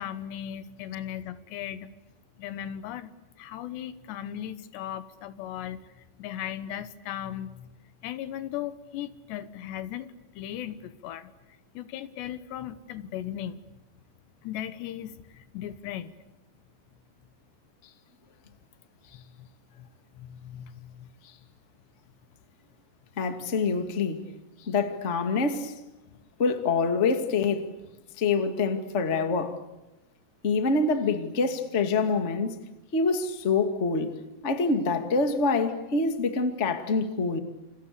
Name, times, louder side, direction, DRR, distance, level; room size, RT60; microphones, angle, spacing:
voice 1, 0.0-1.9 2.4-3.1 3.4-5.9 6.2-7.7 8.0-11.3 11.7-13.6 14.4-16.2 19.1-19.5 19.8-19.9 20.2-21.1, left 11 dB, 80° left, 3.3 m, -37 dB
voice 2, 23.2-24.3 24.6-25.7 26.4-27.7 28.2-29.6 30.4-32.6 32.9-34.1 34.4-37.4, left 4 dB, 25° left, 1.4 m, -26 dB
29.5 x 28.5 x 6.8 m
omnidirectional pair, 5.0 m